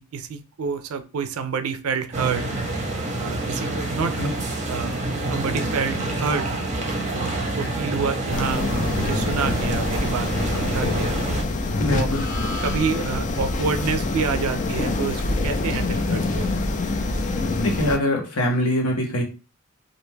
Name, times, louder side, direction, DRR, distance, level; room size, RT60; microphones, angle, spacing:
voice 1, 0.1-2.4 3.2-4.1 4.7-4.9 5.3-6.5 7.2-11.2 11.9-12.1 12.6-16.5, right 5 dB, 75° right, 9 dB, 0.4 m, -28 dB
sound 1, 2.1-11.4, right 2 dB, 35° right, 0.6 m, -27 dB
sound 2, 8.3-18.0, left 2 dB, 35° left, 0.4 m, -25 dB
voice 2, 11.8-12.2 17.6-19.2, left 1 dB, 90° left, 1 dB, 0.9 m, -23 dB
2.5 x 2.2 x 3.1 m, 0.32 s
head